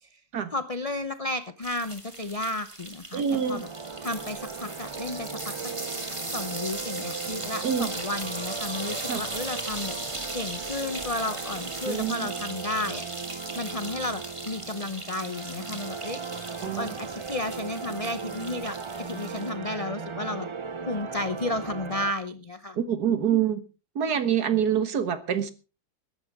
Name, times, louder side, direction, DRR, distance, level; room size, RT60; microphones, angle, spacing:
voice 1, 0.5-3.2 3.5-3.7 4.0-5.6 6.3-9.9 10.3-13.0 13.5-16.2 16.6-20.5 20.9-22.8, left 2 dB, 30° left, 11 dB, 0.6 m, -33 dB
sound 1, 1.6-19.5, right 2 dB, 20° right, 2.2 m, -38 dB
voice 2, 3.1-3.6 7.6-7.9 9.1-9.2 11.9-12.3 16.6-16.9 22.8-23.6 24.0-25.5, right 8 dB, 75° right, 11 dB, 2.0 m, -26 dB
sound 2, 3.3-22.1, right 5 dB, 45° right, 0.3 m, -38 dB
21.0 x 11.5 x 3.6 m, 0.33 s
omnidirectional pair, 1.7 m